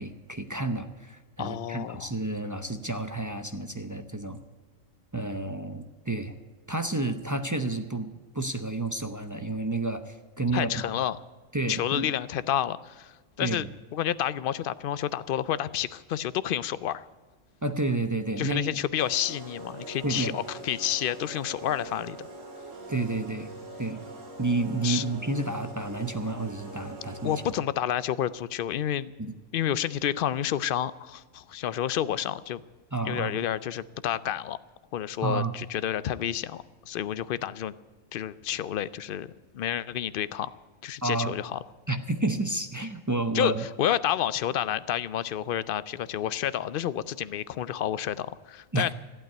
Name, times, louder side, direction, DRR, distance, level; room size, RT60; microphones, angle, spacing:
voice 1, 0.0-4.4 5.1-6.3 6.7-10.9 11.5-12.1 13.4-13.6 17.6-18.7 20.0-20.4 22.9-23.5 23.8-24.0 24.4-27.4 29.2-29.3 32.9-33.4 35.2-35.5 41.0-41.3 41.9-43.6 48.7-48.9, right 2 dB, 20° right, 8 dB, 0.5 m, -30 dB
voice 2, 1.4-2.1 10.5-11.2 11.7-17.0 18.4-22.3 24.8-25.1 27.2-29.1 29.5-32.6 33.0-34.6 34.9-37.7 38.1-40.5 40.8-41.6 43.3-48.9, left 10 dB, 60° left, 17 dB, 0.6 m, -30 dB
sound 1, 19.0-27.7, right 2 dB, 70° right, 2.3 m, -43 dB
14.5 x 8.8 x 9.2 m, 1.4 s
omnidirectional pair, 1.4 m